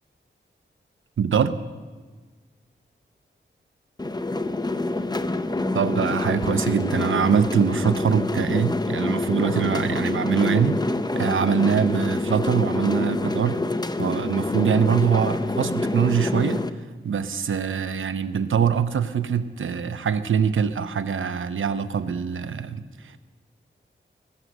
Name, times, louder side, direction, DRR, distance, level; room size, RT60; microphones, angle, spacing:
voice 1, 1.2-1.6 5.7-10.8 11.1-13.6 14.0-16.6 17.0-23.2, right 7 dB, 85° right, 11 dB, 0.8 m, -23 dB
sound 1, 4.0-16.7, left 2 dB, 20° left, 0.7 m, -26 dB
21.0 x 8.0 x 6.4 m, 1.4 s
wide cardioid pair, 80°, 20 cm